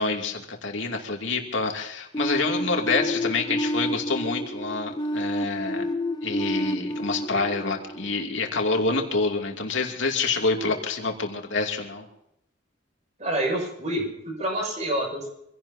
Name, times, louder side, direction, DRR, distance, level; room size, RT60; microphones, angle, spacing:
voice 1, 0.0-5.8 6.2-12.1, left 3 dB, 75° left, 1 dB, 2.7 m, -27 dB
sound 1, 2.1-8.9, equal, 20° left, 0.7 m, -30 dB
voice 2, 13.2-15.3, right 1 dB, 35° right, 1 dB, 6.7 m, -28 dB
26.5 x 17.0 x 2.9 m, 0.80 s
head